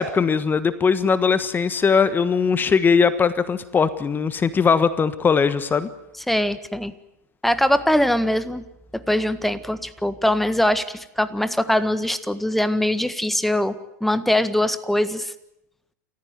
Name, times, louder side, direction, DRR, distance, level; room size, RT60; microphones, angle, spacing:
voice 1, 0.0-5.9, left 5 dB, 20° left, 14 dB, 1.4 m, -20 dB
voice 2, 6.3-6.9 7.4-8.6 8.9-13.7 14.0-15.3, left 1 dB, ahead, 12 dB, 1.6 m, -22 dB
28.5 x 15.0 x 9.5 m, 0.84 s
hypercardioid pair, 100°, 9 cm